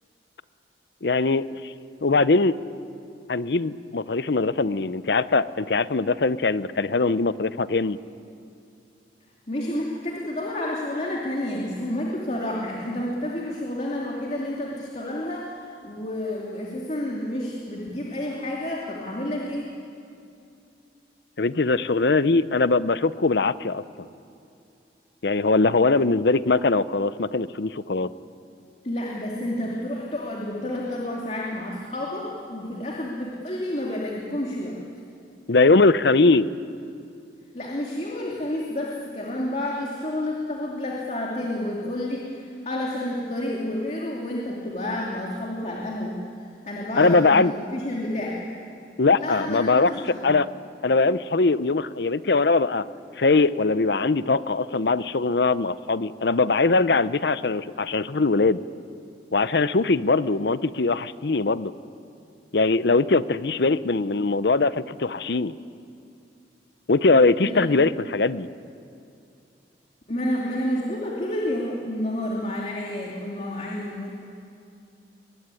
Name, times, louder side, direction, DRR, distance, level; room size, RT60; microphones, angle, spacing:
voice 1, 1.0-1.7 2.0-2.5 3.3-8.0 21.4-23.8 25.2-28.1 35.5-36.5 47.0-47.5 49.0-49.9 50.2-50.5 50.8-52.9 53.2-58.6 59.3-61.7 62.5-65.5 66.9-68.5, left 3 dB, 65° left, 15 dB, 0.7 m, -21 dB
voice 2, 9.5-19.7 28.8-34.8 37.5-48.4 49.1-50.3 67.4-67.7 70.1-74.1, left 1 dB, 40° left, -2 dB, 2.7 m, -30 dB
23.5 x 21.0 x 9.8 m, 2.6 s
head